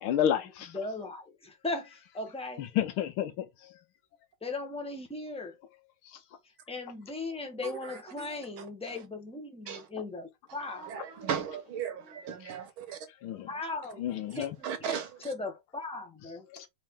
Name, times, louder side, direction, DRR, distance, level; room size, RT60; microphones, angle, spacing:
voice 1, 0.0-0.7 2.6-3.3 13.2-13.5 14.0-14.5 16.5-16.7, left 10 dB, 90° left, 1.7 m, -30 dB
voice 2, 0.7-2.7 4.4-5.6 6.7-10.9 13.5-14.0 14.3-14.5 14.8-16.4, left 3 dB, 5° left, 0.6 m, -38 dB
voice 3, 7.6-8.4 9.7-9.9 10.8-13.0 14.6-15.2, right 8 dB, 80° right, 1.9 m, -36 dB
4.4 x 3.2 x 3.6 m
omnidirectional pair, 2.2 m